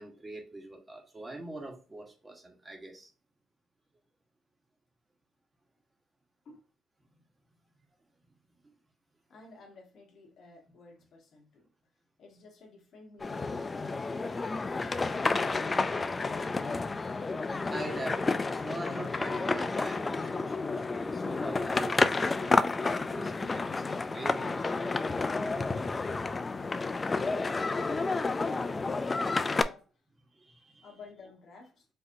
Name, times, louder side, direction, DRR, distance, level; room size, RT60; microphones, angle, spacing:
voice 1, 0.0-3.1 17.6-24.6 30.3-30.9, right 2 dB, 20° right, 1.3 m, -43 dB
voice 2, 9.3-11.7 12.2-14.6 14.9-16.9 30.8-31.8, left 4 dB, 60° left, 1.5 m, -53 dB
sound 1, 13.2-29.6, left 3 dB, 30° left, 0.3 m, -30 dB
5.3 x 2.8 x 2.6 m
cardioid pair, 90°, 0 cm